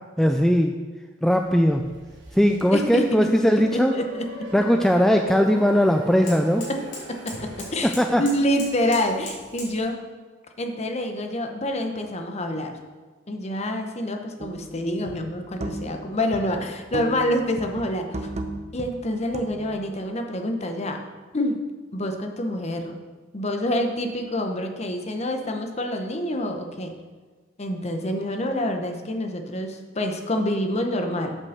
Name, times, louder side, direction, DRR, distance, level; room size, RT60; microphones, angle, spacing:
voice 1, 0.2-0.8 1.2-1.9 2.3-3.9 4.5-6.7 7.8-8.2, equal, ahead, 4 dB, 0.3 m, -19 dB
sound 1, 1.4-7.9, right 1 dB, 65° right, 1.3 m, -39 dB
voice 2, 2.7-3.3 3.7-4.5 7.1-10.0 10.6-12.8 13.3-18.3 18.7-21.0 21.3-21.6 21.9-23.0 23.3-26.9 27.6-31.4, left 1 dB, 35° left, 4 dB, 0.9 m, -27 dB
sound 2, 3.4-9.8, left 2 dB, 75° left, 3.3 m, -43 dB
sound 3, 14.4-14.7 15.1-16.0 16.3-17.3 17.6-19.8, right 1 dB, 35° right, 0.7 m, -35 dB
8.6 x 5.3 x 6.5 m, 1.4 s
head